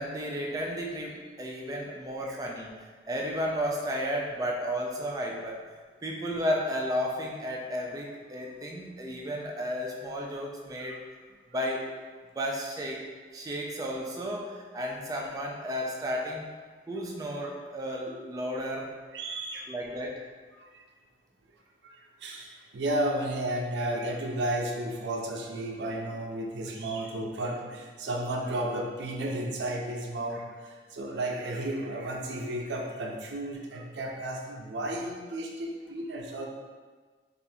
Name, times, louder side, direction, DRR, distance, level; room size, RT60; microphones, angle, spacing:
voice 1, 0.0-2.8 3.1-5.7 6.0-11.0 11.5-11.9 12.3-13.0 13.3-16.4 16.9-18.9 19.7-20.2, equal, 20° right, -1 dB, 0.3 m, -33 dB
voice 2, 19.1-19.7 20.5-20.8 21.8-36.5, right 1 dB, 80° right, 0 dB, 0.5 m, -33 dB
3.4 x 2.5 x 2.6 m, 1.5 s
head